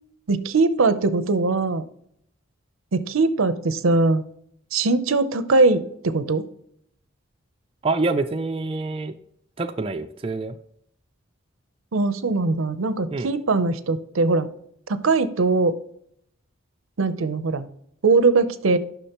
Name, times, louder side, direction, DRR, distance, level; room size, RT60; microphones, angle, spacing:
voice 1, 0.3-1.8 2.9-4.2 4.7-6.4 11.9-14.5 14.9-15.8 17.0-17.6 18.0-18.8, right 3 dB, 85° right, 13 dB, 0.7 m, -21 dB
voice 2, 7.8-9.1 9.6-10.6 13.1-13.3, right 3 dB, 25° right, 6 dB, 0.4 m, -26 dB
10.0 x 6.1 x 3.0 m, 0.69 s
head